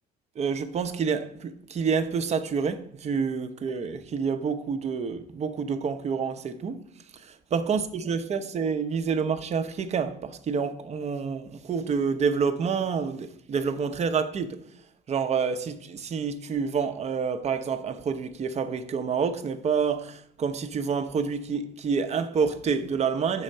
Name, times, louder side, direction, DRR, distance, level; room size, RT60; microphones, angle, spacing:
voice 1, 0.4-6.8 7.1-14.6 15.1-23.4, right 6 dB, 40° right, 0.7 m, -28 dB
6.3 x 4.4 x 6.4 m
cardioid pair, 110°, 17 cm